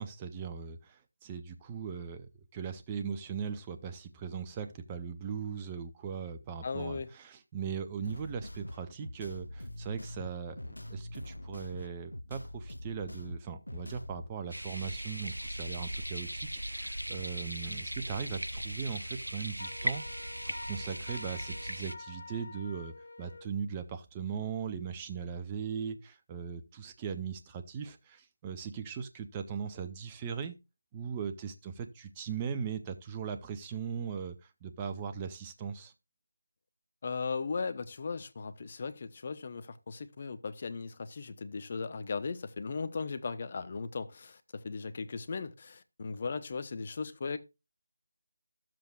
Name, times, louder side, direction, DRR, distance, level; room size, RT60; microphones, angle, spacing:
voice 1, 0.0-20.0 20.4-22.9 23.2-30.6 30.9-35.9, right 6 dB, 15° right, 0.6 m, -39 dB
voice 2, 6.6-7.1 37.0-47.4, left 4 dB, 35° left, 0.8 m, -37 dB
sound 1, 8.0-14.3, left 1 dB, 75° left, 0.8 m, -44 dB
sound 2, 14.5-21.9, equal, 90° right, 0.7 m, -38 dB
Wind instrument woodwind instrument, 19.6-23.5, left 3 dB, 55° left, 1.2 m, -47 dB
12.5 x 7.6 x 2.4 m
figure-of-eight pair, 160°, 0 cm